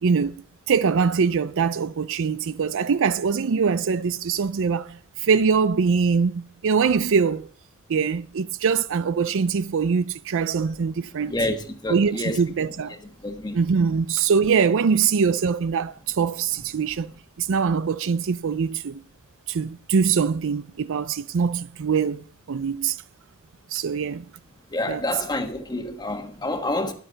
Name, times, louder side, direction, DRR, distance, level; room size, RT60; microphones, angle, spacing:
voice 1, 0.0-7.5 7.9-11.3 11.9-12.9 13.5-19.0 19.5-23.0 23.7-24.2 24.9-25.0, right 5 dB, 60° right, 0.5 m, -23 dB
voice 2, 11.3-12.4 12.9-13.7 24.7-26.9, left 1 dB, 20° left, 1.4 m, -28 dB
13.0 x 11.0 x 3.9 m
head